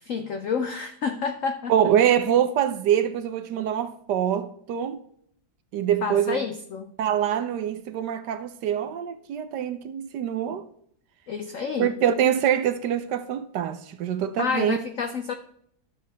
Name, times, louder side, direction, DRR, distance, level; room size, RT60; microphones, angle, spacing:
voice 1, 0.0-1.7 6.0-6.9 11.3-11.9 14.4-15.3, left 5 dB, 70° left, 0.7 m, -29 dB
voice 2, 1.7-5.0 5.7-6.4 7.0-10.6 11.8-14.8, right 9 dB, 70° right, 1.1 m, -24 dB
12.0 x 6.9 x 3.4 m
omnidirectional pair, 2.1 m